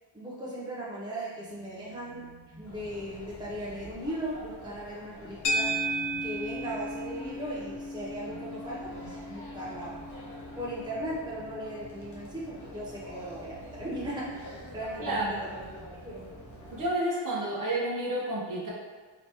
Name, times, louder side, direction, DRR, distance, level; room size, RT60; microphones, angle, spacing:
voice 1, 0.1-5.7 6.2-10.0 10.6-15.7 16.0-16.3, right 1 dB, 10° right, -6 dB, 0.6 m, -38 dB
sound 1, 1.3-4.6 5.3-11.9 12.9-14.8, right 5 dB, 70° right, 1.4 m, -54 dB
sound 2, 2.6-16.9, left 1 dB, 40° left, 0.9 m, -47 dB
sound 3, 5.4-13.9, right 1 dB, 60° left, 0.5 m, -36 dB
voice 2, 15.0-15.3 16.7-18.7, right 1 dB, 45° right, -5 dB, 0.9 m, -30 dB
3.3 x 3.0 x 2.9 m, 1.4 s
wide cardioid pair, 105°, 47 cm